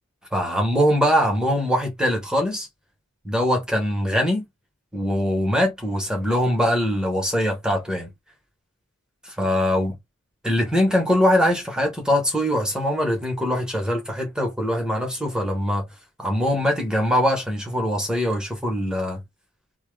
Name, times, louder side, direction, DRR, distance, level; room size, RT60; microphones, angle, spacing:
voice 1, 0.3-2.7 3.2-4.4 4.9-8.1 9.2-9.9 10.4-15.9 16.2-19.2, equal, 5° right, 1.1 m, -22 dB
3.0 x 2.3 x 3.1 m
head